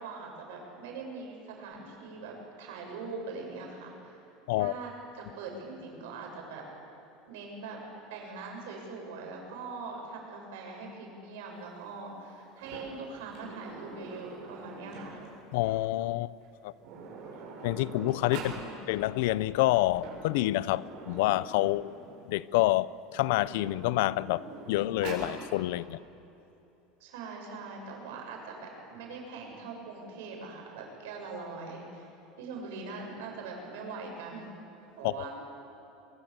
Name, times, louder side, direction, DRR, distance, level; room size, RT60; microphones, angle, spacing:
voice 1, 0.0-4.2 4.6-6.6 7.3-7.8 8.1-15.2 18.4-18.8 27.0-32.1 32.4-34.5 35.0-35.4, right 4 dB, 85° right, 1 dB, 7.6 m, -42 dB
Sliding door, 12.6-15.4 16.4-16.5 16.8-18.6 19.7-22.3 23.0-25.3, right 4 dB, 50° right, 7.9 m, -44 dB
voice 2, 15.5-16.3 16.6-16.7 17.6-18.5 18.9-21.9 22.3-26.0 35.0-35.1, left 17 dB, 75° left, 19 dB, 0.6 m, -28 dB
23.5 x 22.5 x 8.2 m, 2.9 s
cardioid pair, 160°, 0 cm